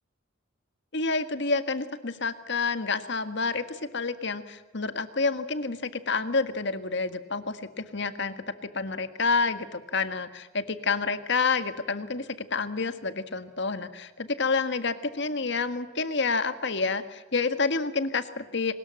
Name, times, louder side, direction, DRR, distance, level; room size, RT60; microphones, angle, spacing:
voice 1, 0.9-8.3 8.7-18.7, left 4 dB, 60° left, 11 dB, 1.7 m, -29 dB
24.0 x 20.5 x 7.7 m, 1.2 s
head